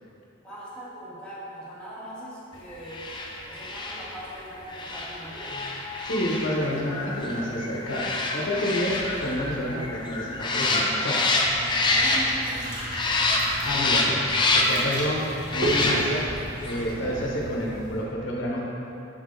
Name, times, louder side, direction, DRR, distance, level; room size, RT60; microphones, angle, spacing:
voice 1, 0.4-3.1 3.4-5.7 11.7-12.8, equal, 5° left, -10 dB, 1.3 m, -40 dB
sound 1, 2.8-12.6 12.9-14.9 15.4-16.3 16.6-16.8, left 2 dB, 25° left, 0.4 m, -27 dB
voice 2, 6.0-11.3 13.6-16.3 16.6-18.6, equal, 75° left, -3 dB, 0.8 m, -29 dB
sound 2, 8.4-10.5 11.3-13.2 13.5-13.6, equal, 85° right, 0.6 m, -48 dB
sound 3, 11.3-18.0, right 1 dB, 45° right, 1.2 m, -33 dB
6.7 x 3.8 x 3.8 m, 2.8 s
head